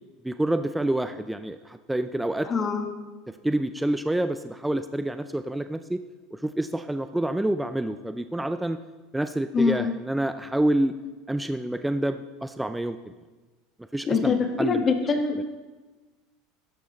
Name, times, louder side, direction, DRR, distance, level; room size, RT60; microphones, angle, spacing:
voice 1, 0.2-2.5 3.4-6.0 6.3-8.8 9.1-11.0 11.3-13.0 13.9-14.3 14.6-14.9 15.3-15.4, right 1 dB, 5° right, 9 dB, 0.4 m, -27 dB
voice 2, 2.4-2.8 9.5-9.8 14.1-15.4, left 5 dB, 25° left, 4 dB, 1.5 m, -24 dB
16.0 x 13.0 x 3.1 m, 1.2 s
supercardioid pair, 155°, 0 cm